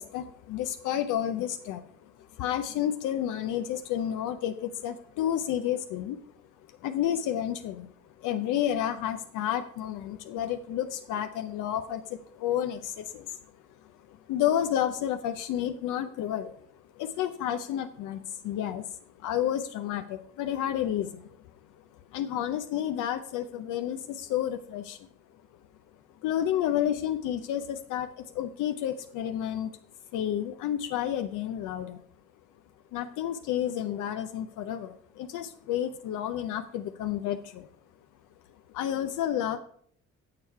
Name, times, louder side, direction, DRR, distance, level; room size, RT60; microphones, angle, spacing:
voice 1, 0.0-1.9 2.3-6.2 6.7-7.9 8.2-13.4 13.8-16.6 16.9-21.3 22.1-25.1 26.2-29.7 30.1-32.0 32.9-37.7 38.7-39.6, left 10 dB, 90° left, 8 dB, 0.6 m, -31 dB
7.2 x 6.7 x 4.5 m, 0.63 s
cardioid pair, 90°, 30 cm